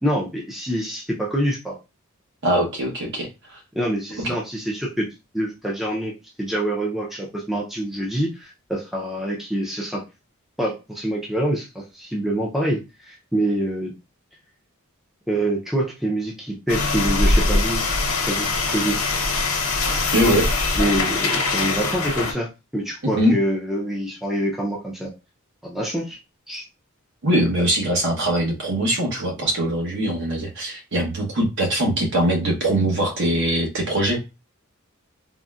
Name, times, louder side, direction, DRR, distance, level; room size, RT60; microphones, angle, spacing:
voice 1, 0.0-1.8 3.7-5.1 5.3-6.1 6.4-10.0 10.6-12.8 13.1-13.9 15.3-17.8 18.3-19.0 20.8-22.5 22.7-25.1 25.6-26.2 26.5-26.6, right 1 dB, ahead, -2 dB, 0.4 m, -25 dB
voice 2, 2.4-3.6 4.2-4.3 20.1-20.5 23.1-23.4 27.2-34.2, right 1 dB, 55° right, 0 dB, 1.0 m, -22 dB
sound 1, 16.7-22.3, left 3 dB, 85° left, 0.9 m, -22 dB
3.8 x 2.1 x 2.3 m, 0.27 s
head